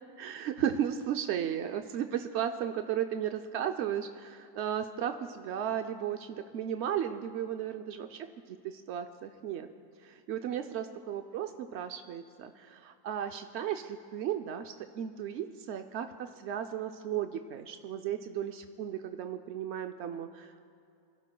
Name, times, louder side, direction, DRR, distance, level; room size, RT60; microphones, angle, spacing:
voice 1, 0.2-9.7 10.0-20.7, right 9 dB, 75° right, 6 dB, 0.6 m, -35 dB
24.5 x 16.0 x 2.3 m, 2.5 s
omnidirectional pair, 1.7 m